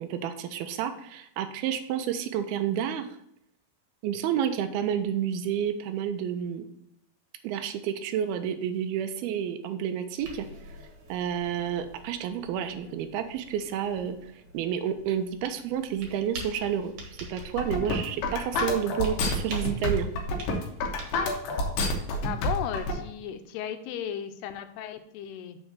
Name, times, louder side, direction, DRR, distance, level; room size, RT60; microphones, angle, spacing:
voice 1, 0.0-3.1 4.0-6.7 7.4-10.5 11.1-14.2 14.5-17.0 17.3-20.1, right 9 dB, 80° right, 8 dB, 2.5 m, -30 dB
sound 1, 10.2-22.9, right 2 dB, 60° right, 2.9 m, -46 dB
sound 2, 17.4-22.9, left 2 dB, 65° left, 2.6 m, -28 dB
voice 2, 22.2-25.6, left 9 dB, 85° left, 9 dB, 2.7 m, -35 dB
6.3 x 4.6 x 6.5 m, 0.75 s
omnidirectional pair, 4.5 m